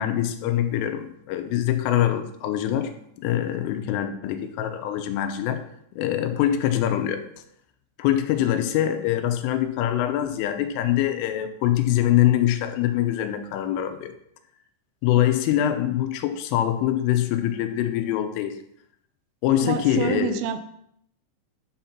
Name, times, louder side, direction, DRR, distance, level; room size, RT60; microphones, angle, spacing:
voice 1, 0.0-2.9 3.2-5.6 6.0-7.2 8.0-14.1 15.0-18.6 19.4-20.3, left 12 dB, 85° left, 8 dB, 3.3 m, -24 dB
voice 2, 19.6-20.8, right 8 dB, 80° right, 9 dB, 2.7 m, -28 dB
11.0 x 4.1 x 5.8 m, 0.70 s
omnidirectional pair, 5.8 m